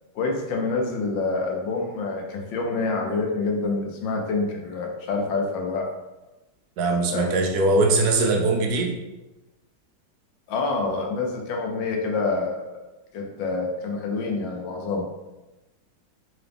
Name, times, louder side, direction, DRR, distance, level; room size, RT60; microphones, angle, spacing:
voice 1, 0.1-5.9 7.1-7.3 10.5-12.6 13.1-15.0, left 3 dB, 75° left, 1 dB, 1.3 m, -27 dB
voice 2, 6.8-8.9, right 3 dB, 70° right, 1 dB, 0.9 m, -21 dB
3.9 x 2.9 x 3.3 m, 1.1 s
omnidirectional pair, 2.2 m